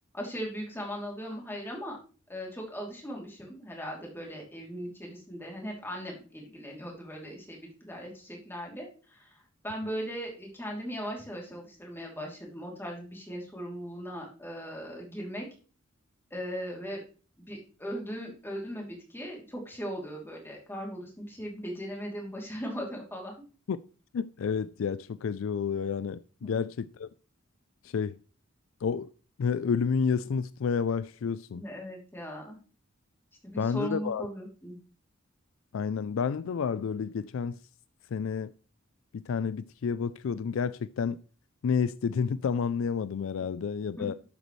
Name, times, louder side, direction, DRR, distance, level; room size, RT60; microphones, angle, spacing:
voice 1, 0.1-2.0 2.3-15.4 16.3-17.0 17.4-23.3 26.4-26.5 31.5-32.6 33.4-34.8 44.0-44.2, equal, 10° left, 2.9 m, -38 dB
voice 2, 24.1-27.1 27.8-28.2 28.8-29.1 29.4-31.6 33.6-34.3 35.7-37.6 38.1-38.5 39.1-41.2 41.6-44.1, left 6 dB, 70° left, 0.4 m, -30 dB
12.0 x 8.1 x 3.1 m
head